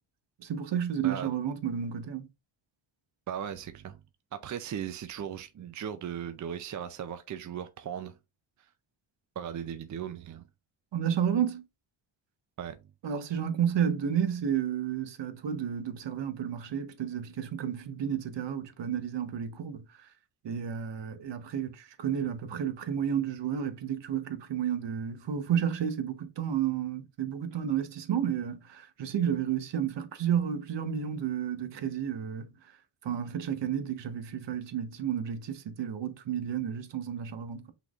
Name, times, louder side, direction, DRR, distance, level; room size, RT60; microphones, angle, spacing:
voice 1, 0.4-2.3 10.9-11.6 13.0-19.8 20.4-32.5 33.0-37.7, right 8 dB, 60° right, 1.0 m, -31 dB
voice 2, 3.3-4.0 4.3-8.2 8.6-8.7 9.4-10.4 12.6-12.8, right 9 dB, 40° right, 0.5 m, -37 dB
5.8 x 3.7 x 2.4 m
cardioid pair, 110°, 50 cm